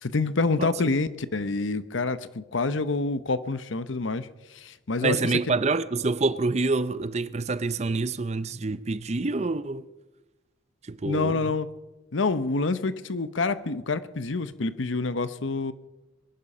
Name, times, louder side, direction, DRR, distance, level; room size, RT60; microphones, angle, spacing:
voice 1, 0.0-4.3 4.5-5.2 11.0-11.7 12.1-15.7, left 3 dB, 75° left, 0.9 m, -27 dB
voice 2, 5.0-9.9 10.8-11.4, right 3 dB, 35° right, 0.6 m, -27 dB
22.0 x 11.5 x 5.5 m
head